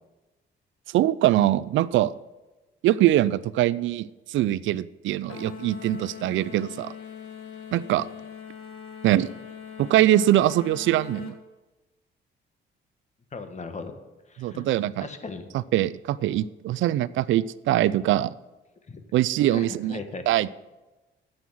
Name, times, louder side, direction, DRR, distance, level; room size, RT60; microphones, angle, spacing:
voice 1, 0.9-2.1 2.8-6.9 7.7-8.1 9.0-9.3 9.8-11.3 14.4-15.1 15.5-18.3 19.1-20.0 20.3-20.5, right 13 dB, 75° right, 17 dB, 0.4 m, -23 dB
sound 1, 5.3-11.4, left 7 dB, 85° left, 1.4 m, -41 dB
voice 2, 13.3-13.9 14.3-14.7 15.0-15.5 18.9-19.0 19.5-20.2, left 4 dB, 35° left, 8 dB, 1.3 m, -37 dB
9.1 x 7.9 x 6.2 m, 1.1 s
cardioid pair, 90°, 20 cm